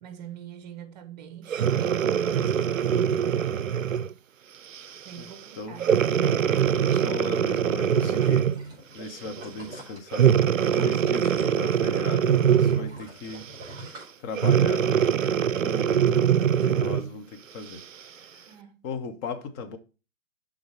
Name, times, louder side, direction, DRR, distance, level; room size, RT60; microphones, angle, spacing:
voice 1, 0.0-3.5 5.0-6.0 15.8-16.6 18.5-18.8, right 9 dB, 30° right, 0.9 m, -44 dB
Breathing, 1.5-4.1 4.7-5.0 5.8-8.7 10.1-13.0 14.4-17.1 17.7-17.8, right 8 dB, 70° right, 0.5 m, -23 dB
voice 2, 6.7-8.5 8.9-10.3 10.7-13.5 13.8-13.9 14.2-17.8 18.2-18.5 18.8-19.8, left 4 dB, 15° left, 0.7 m, -37 dB
sound 1, 7.8-12.0 12.3-14.8 15.2-15.3, right 2 dB, 10° right, 3.7 m, -46 dB
11.0 x 3.6 x 4.5 m
figure-of-eight pair, 120°, 40 cm